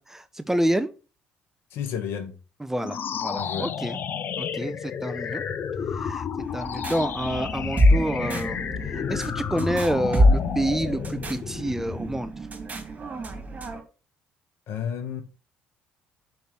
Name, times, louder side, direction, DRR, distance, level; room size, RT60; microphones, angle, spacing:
voice 1, 0.1-0.9 2.6-4.0 4.4-5.4 5.9-6.3 6.5-12.3, right 1 dB, 10° right, 0.9 m, -28 dB
voice 2, 1.7-2.3 3.3-3.7 14.7-15.2, left 8 dB, 70° left, 1.6 m, -31 dB
sound 1, 2.8-12.3, left 7 dB, 55° left, 0.8 m, -31 dB
sound 2, 6.4-13.8, equal, 35° right, 3.4 m, -26 dB
5.9 x 5.3 x 6.2 m
hypercardioid pair, 60°, 4 cm